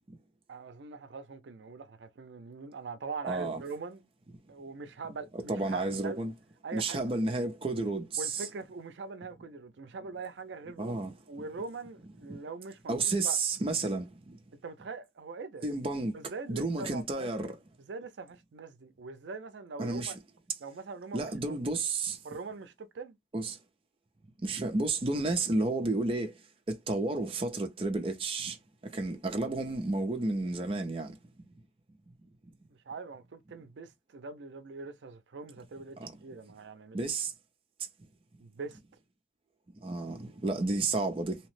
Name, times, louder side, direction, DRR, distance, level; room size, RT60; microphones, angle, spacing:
voice 1, 0.5-4.1 4.5-6.2 6.6-7.0 8.2-11.0 11.3-13.4 14.6-15.6 16.1-17.3 17.9-20.2 20.6-21.8 22.2-23.2 32.9-37.0 38.4-38.8, right 4 dB, 85° right, 0.5 m, -42 dB
voice 2, 3.2-3.6 5.3-6.3 6.7-8.5 10.8-11.1 12.9-14.4 15.6-16.1 16.5-17.6 19.8-20.1 21.1-22.2 23.3-23.6 24.4-26.3 26.7-28.6 28.9-31.1 36.0-36.1 36.9-37.3 39.8-41.4, right 3 dB, 30° right, 0.5 m, -31 dB
2.8 x 2.0 x 3.0 m
head